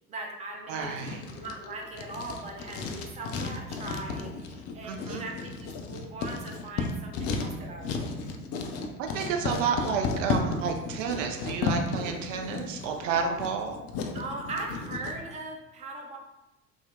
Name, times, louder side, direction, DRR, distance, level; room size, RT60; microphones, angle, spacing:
voice 1, 0.1-0.9 1.3-8.0 14.1-16.2, right 2 dB, 15° right, 0 dB, 0.5 m, -39 dB
voice 2, 0.7-1.2 4.8-5.2 9.0-13.8, right 6 dB, 65° right, 3 dB, 0.5 m, -31 dB
Writing, 0.8-15.1, left 4 dB, 35° left, 0.4 m, -34 dB
3.6 x 2.0 x 2.6 m, 0.97 s
figure-of-eight pair, 60°, 42 cm